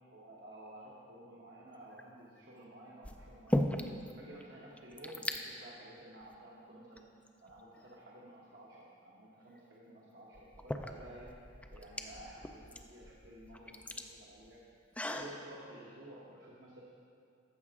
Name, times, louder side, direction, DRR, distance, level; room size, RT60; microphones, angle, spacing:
voice 1, 0.1-3.7 4.1-7.1 7.4-11.3 11.7-14.6 15.0-16.8, right 1 dB, 60° right, -6 dB, 1.2 m, -53 dB
sound 1, 1.8-2.2 3.0-4.1 4.4-4.5 4.7-5.4 6.2-6.4 7.0-7.9 9.6-9.7 10.3-15.4, left 1 dB, 5° left, 0.3 m, -38 dB
14.5 x 5.9 x 3.6 m, 2.4 s
head